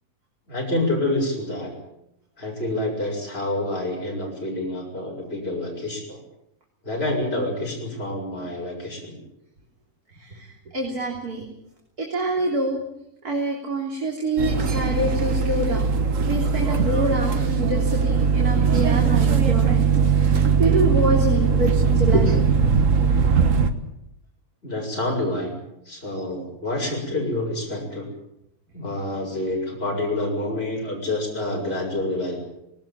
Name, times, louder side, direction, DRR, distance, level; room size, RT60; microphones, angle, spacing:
voice 1, 0.5-1.7 2.4-6.2 6.8-9.2 24.6-25.5 25.9-28.1 28.7-32.4, left 1 dB, 40° left, -2 dB, 6.3 m, -27 dB
voice 2, 10.2-10.5 10.7-11.4 12.0-12.8 13.2-15.9 16.2-22.5 26.1-26.4, right 2 dB, 75° right, -1 dB, 4.0 m, -26 dB
sound 1, 14.4-23.7, right 5 dB, 55° right, 1.7 m, -20 dB
19.5 x 18.5 x 8.9 m, 0.81 s
omnidirectional pair, 1.6 m